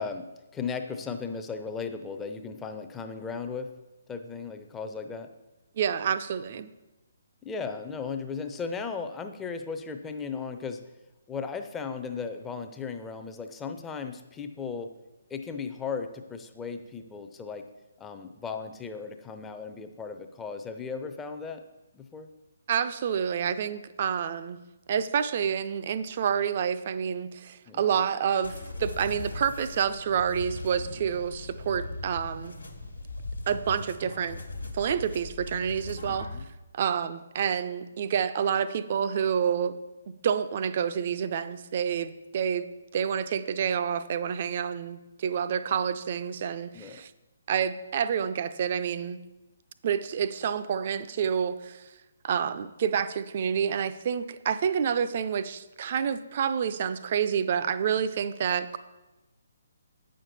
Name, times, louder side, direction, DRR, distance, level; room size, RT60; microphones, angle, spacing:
voice 1, 0.0-3.7 4.1-5.3 7.4-10.8 11.3-14.9 15.3-17.7 18.0-21.6 21.9-22.3 27.7-27.8 36.1-36.5 46.7-47.0, left 5 dB, 10° left, 6 dB, 0.5 m, -36 dB
voice 2, 5.8-6.7 22.7-24.6 24.9-32.6 33.5-34.4 34.7-36.4 36.7-39.8 40.1-42.6 42.9-47.1 47.5-49.2 49.8-51.9 52.2-58.8, right 8 dB, 40° right, 12 dB, 0.4 m, -28 dB
sound 1, 28.4-36.4, left 2 dB, 80° left, 1.3 m, -39 dB
8.8 x 6.4 x 4.1 m, 1.1 s
figure-of-eight pair, 135°, 0 cm